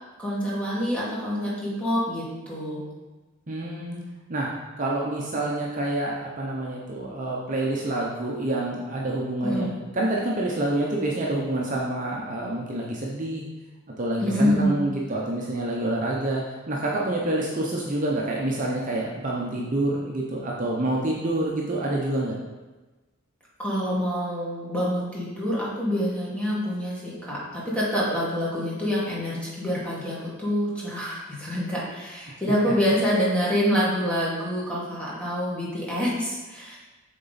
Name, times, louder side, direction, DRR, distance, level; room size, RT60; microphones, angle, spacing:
voice 1, 0.2-2.8 9.4-9.7 14.2-14.8 23.6-36.8, equal, 5° left, -7 dB, 1.7 m, -26 dB
voice 2, 3.5-4.0 4.3-4.5 4.8-9.7 9.9-13.4 14.0-22.4 32.3-32.4, right 1 dB, 35° right, -3 dB, 0.7 m, -27 dB
7.3 x 3.8 x 4.0 m, 1.2 s
head